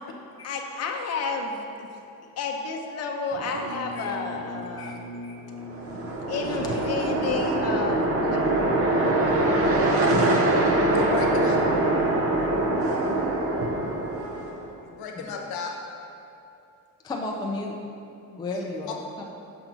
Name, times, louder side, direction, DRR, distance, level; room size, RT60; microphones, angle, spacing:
voice 1, 0.4-1.9 2.4-5.0 6.3-8.4, left 4 dB, 45° left, 2 dB, 0.7 m, -31 dB
Musical instrument, 3.3-13.1, equal, 85° right, 0.9 m, -42 dB
voice 2, 4.8-5.3 6.5-6.8 15.2-15.3 17.0-17.7 18.3-19.3, left 2 dB, 10° left, 0 dB, 0.3 m, -34 dB
sound 1, 5.6-14.7, right 2 dB, 40° right, 0.6 m, -23 dB
Wind instrument woodwind instrument, 9.7-14.5, right 4 dB, 55° right, 1.3 m, -40 dB
voice 3, 10.9-11.6 14.8-15.7 18.5-19.0, left 5 dB, 80° left, 1 dB, 0.9 m, -34 dB
5.9 x 5.9 x 3.8 m, 2.7 s
cardioid pair, 175°, 36 cm